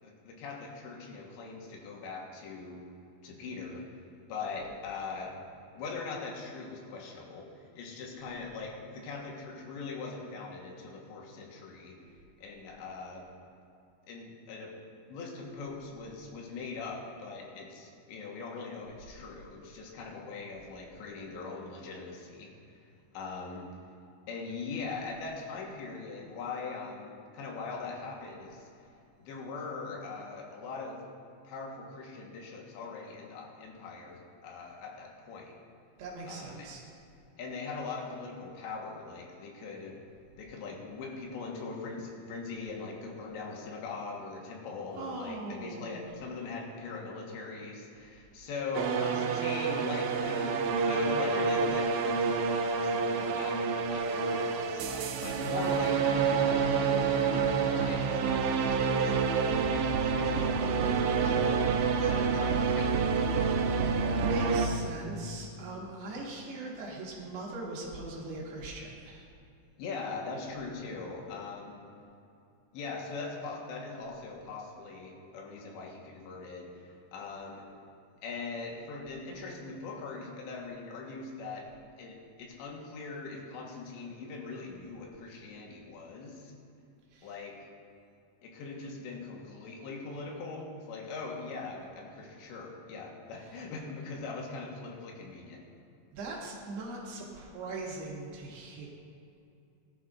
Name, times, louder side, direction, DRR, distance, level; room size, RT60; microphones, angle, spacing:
voice 1, 0.0-2.8 3.2-3.9 4.3-5.4 5.7-12.0 12.4-13.3 14.1-14.7 15.1-22.5 23.1-23.7 24.3-28.7 29.2-31.0 31.5-35.5 36.3-36.7 37.4-39.9 40.4-59.1 59.7-63.2 69.8-71.8 72.7-77.7 78.2-81.7 82.0-86.5 87.2-87.6 88.4-95.6, left 4 dB, 80° left, -1 dB, 3.6 m, -41 dB
voice 2, 36.0-36.8 44.9-46.0 63.5-69.2 87.1-87.3 96.1-98.9, right 2 dB, 70° right, -3 dB, 3.4 m, -41 dB
sound 1, 48.7-64.7, right 5 dB, 85° right, 3.2 m, -28 dB
18.5 x 11.0 x 2.6 m, 2.6 s
omnidirectional pair, 5.2 m